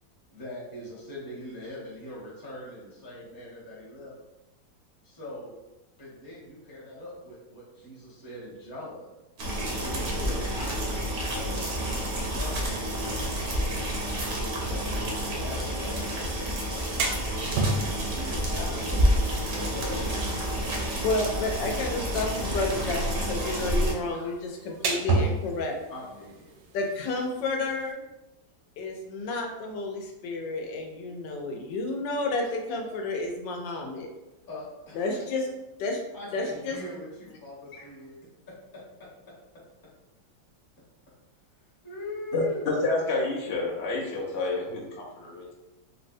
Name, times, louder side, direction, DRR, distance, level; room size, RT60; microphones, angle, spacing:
voice 1, 0.3-4.1 5.0-5.5 6.0-9.2 9.8-11.5 11.8-13.7 14.4-14.8 15.3-17.5 18.1-20.1 20.7-21.5 25.9-26.5 34.5-35.2 36.1-38.2 41.8-42.7, left 1 dB, 20° left, -7 dB, 0.6 m, -42 dB
sound 1, 9.4-23.9, equal, 65° right, 0.6 m, -29 dB
sound 2, 16.6-27.9, right 3 dB, 80° right, 1.2 m, -34 dB
voice 2, 20.9-25.8 26.7-28.0 28.8-34.1 34.9-35.5 35.8-36.0 36.3-36.8 37.7-37.9, left 2 dB, 85° left, 2 dB, 1.3 m, -31 dB
voice 3, 42.3-45.5, left 3 dB, 65° left, -3 dB, 0.7 m, -29 dB
3.7 x 2.1 x 2.5 m, 1.0 s
omnidirectional pair, 1.9 m